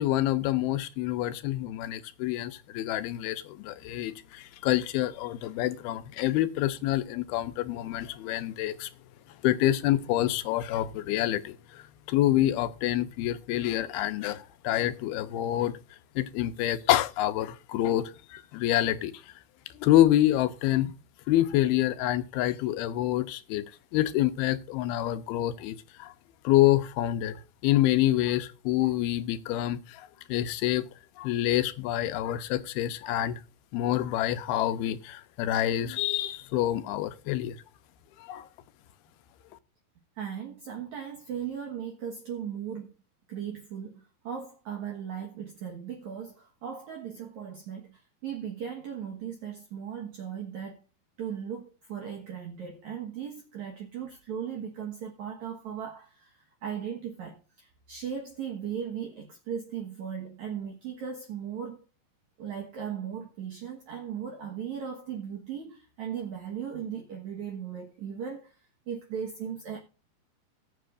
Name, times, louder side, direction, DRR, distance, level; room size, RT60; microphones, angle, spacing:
voice 1, 0.0-8.9 9.4-15.8 16.2-19.1 19.8-20.9 21.3-23.6 23.9-26.1 26.4-30.9 31.2-33.4 33.7-37.6 38.2-38.5, left 14 dB, 80° left, 2.6 m, -27 dB
voice 2, 40.2-42.9 43.3-50.8 51.2-61.8 62.4-68.6 68.9-69.8, right 8 dB, 60° right, 2.4 m, -37 dB
19.5 x 7.8 x 2.5 m
omnidirectional pair, 4.6 m